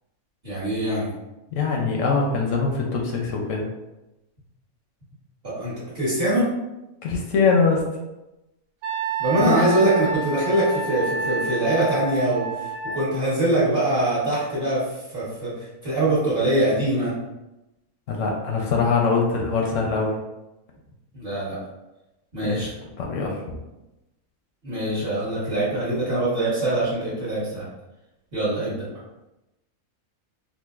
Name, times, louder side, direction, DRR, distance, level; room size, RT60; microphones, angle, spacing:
voice 1, 0.4-1.1 5.4-6.5 9.2-17.1 21.1-21.6 22.3-22.7 24.6-27.7 28.3-28.9, right 1 dB, 45° right, -11 dB, 1.3 m, -23 dB
voice 2, 1.5-3.6 7.0-7.8 9.4-9.7 18.1-20.1 22.4-22.7 23.0-23.6, left 4 dB, 70° left, 0 dB, 0.9 m, -23 dB
Wind instrument woodwind instrument, 8.8-13.0, right 4 dB, 80° right, 1.1 m, -29 dB
3.8 x 2.5 x 2.4 m, 0.97 s
omnidirectional pair, 1.6 m